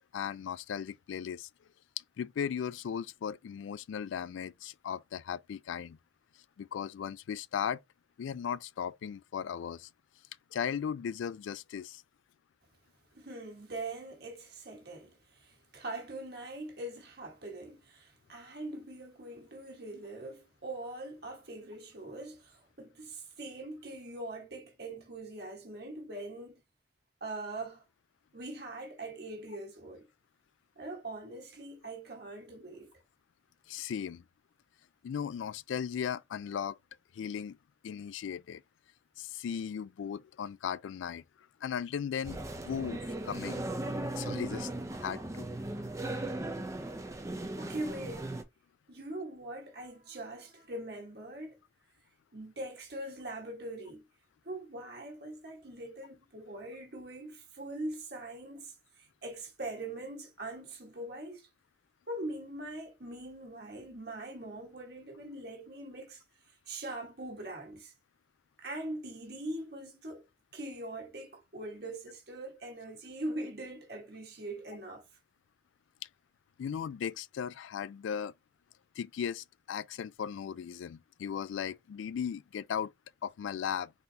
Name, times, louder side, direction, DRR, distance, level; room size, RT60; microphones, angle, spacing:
voice 1, 0.1-1.5 2.2-6.0 6.6-7.8 8.2-9.9 10.5-12.0 33.7-34.2 35.0-36.8 37.1-37.6 37.8-38.6 39.2-41.2 41.6-43.6 44.2-44.7 45.0-45.5 76.6-78.3 79.0-82.9 83.2-83.9, left 8 dB, 75° left, 0.3 m, -37 dB
voice 2, 13.1-26.6 27.2-27.8 28.3-30.1 30.7-33.0 47.6-48.3 48.9-51.6 52.3-54.0 54.4-61.5 62.1-66.2 66.7-67.9 68.6-70.2 70.5-75.0, right 2 dB, 55° right, 1.5 m, -42 dB
sound 1, 42.2-48.4, right 1 dB, 15° right, 0.5 m, -37 dB
4.0 x 3.9 x 2.7 m
head